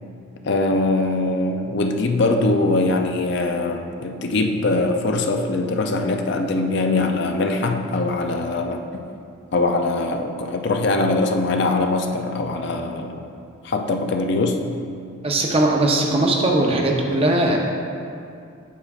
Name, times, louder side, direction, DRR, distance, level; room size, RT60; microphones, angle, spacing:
voice 1, 0.4-9.0 9.5-13.3 13.6-14.6, left 2 dB, 50° left, 4 dB, 0.4 m, -22 dB
voice 2, 15.2-17.6, right 1 dB, 25° right, 0 dB, 0.6 m, -19 dB
8.3 x 7.1 x 2.4 m, 2.4 s
head